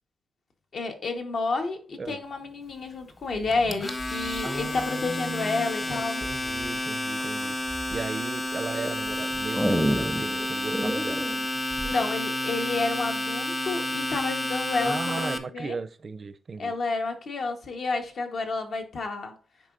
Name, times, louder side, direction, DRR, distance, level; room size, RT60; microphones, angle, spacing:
voice 1, 0.7-6.2 11.8-15.8 16.6-19.3, left 3 dB, 65° left, 1.2 m, -30 dB
sound 1, 3.3-5.2 6.2-6.7 7.2-8.0 8.6-12.0, equal, ahead, 0.5 m, -31 dB
Domestic sounds home sounds, 3.5-15.4, left 1 dB, 25° left, 0.9 m, -30 dB
voice 2, 4.4-7.6 7.9-11.2 14.8-16.7, right 4 dB, 45° right, 0.5 m, -36 dB
9.7 x 4.0 x 2.5 m
cardioid pair, 90°, 0 cm